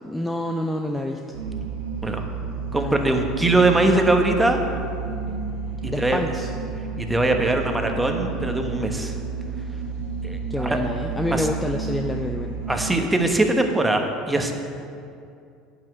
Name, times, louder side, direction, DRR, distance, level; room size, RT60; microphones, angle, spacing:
voice 1, 0.0-1.2 2.8-3.2 5.9-6.5 10.5-12.5, left 1 dB, 10° left, 3 dB, 0.6 m, -27 dB
sound 1, 1.3-13.0, right 4 dB, 85° right, 1.1 m, -31 dB
voice 2, 2.7-4.6 5.8-6.2 7.0-9.2 10.2-10.8 11.3-11.5 12.7-14.5, right 2 dB, 10° right, 4 dB, 1.2 m, -21 dB
9.1 x 6.0 x 8.1 m, 2.5 s
supercardioid pair, 85°, 0 cm